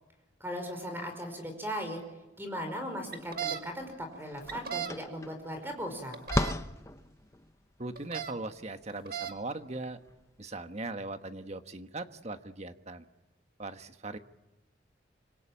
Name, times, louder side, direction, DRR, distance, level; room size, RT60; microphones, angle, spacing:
voice 1, 0.4-2.0 2.4-6.2, equal, 10° right, 5 dB, 5.1 m, -38 dB
sound 1, 3.1-3.6 4.5-4.9 6.1-6.5 8.0-8.3 8.9-9.3, right 8 dB, 50° right, 1.8 m, -35 dB
sound 2, 3.4-3.5 3.8-10.2, left 1 dB, 15° left, 0.9 m, -37 dB
voice 2, 7.8-10.0 10.4-13.0 13.6-14.2, right 2 dB, 35° right, 8 dB, 1.3 m, -39 dB
26.0 x 25.5 x 8.9 m, 1.0 s
head